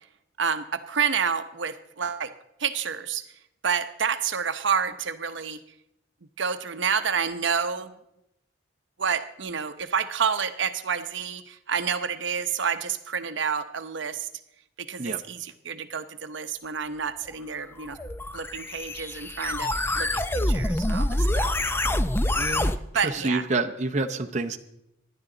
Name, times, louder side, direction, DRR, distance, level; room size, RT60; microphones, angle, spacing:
voice 1, 0.4-2.3 2.6-3.3 3.6-5.6 6.4-7.9 9.0-14.3 14.8-18.0 18.3-21.9 22.9-23.4, right 6 dB, 65° right, 10 dB, 0.8 m, -29 dB
sound 1, 17.8-22.8, left 1 dB, 10° left, 0.4 m, -26 dB
voice 2, 22.4-22.7 23.0-24.6, right 3 dB, 35° right, 5 dB, 0.7 m, -28 dB
26.5 x 11.0 x 3.9 m, 0.84 s
head